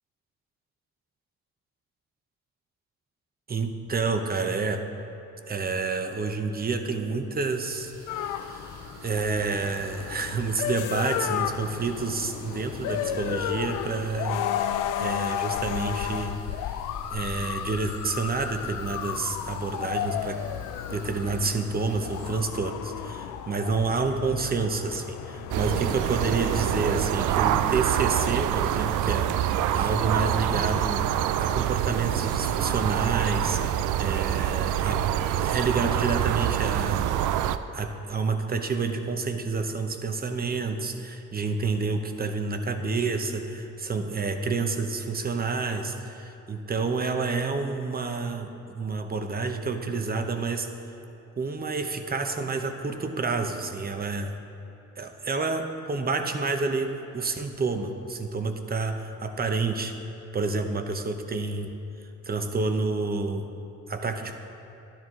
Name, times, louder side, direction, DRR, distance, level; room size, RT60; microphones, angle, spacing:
voice 1, 3.5-4.9 5.5-14.5 15.0-16.4 16.7-16.8 17.1-20.4 20.9-31.0 31.4-35.0 35.3-37.1 37.7-50.7 51.4-54.3 55.0-59.9 60.3-61.7 62.2-63.5 63.9-64.4, right 4 dB, 30° right, 6 dB, 0.9 m, -29 dB
sound 1, 7.7-22.3, right 2 dB, 65° right, 2.2 m, -49 dB
sound 2, 8.1-27.4, left 10 dB, 85° left, 0.5 m, -33 dB
sound 3, 25.5-37.6, right 11 dB, 85° right, 0.5 m, -26 dB
12.0 x 10.5 x 3.8 m, 2.9 s
cardioid pair, 90°, 30 cm